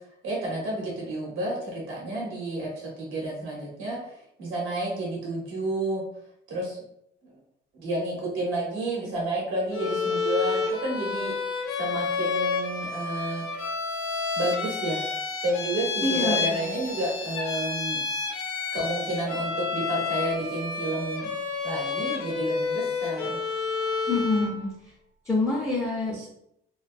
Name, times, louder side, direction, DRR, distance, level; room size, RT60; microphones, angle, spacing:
voice 1, 0.0-6.0 6.5-6.8 7.8-11.3 11.8-13.6 14.3-15.0 15.4-18.0 18.7-21.3 21.6-23.4 26.1-26.3, right 1 dB, 85° right, -4 dB, 0.9 m, -30 dB
Bowed string instrument, 9.7-24.6, left 4 dB, 85° left, 0.5 m, -30 dB
voice 2, 16.0-16.7 24.1-24.7 25.3-26.3, left 3 dB, 15° left, -5 dB, 0.6 m, -26 dB
2.4 x 2.2 x 2.5 m, 0.77 s
cardioid pair, 90°, 20 cm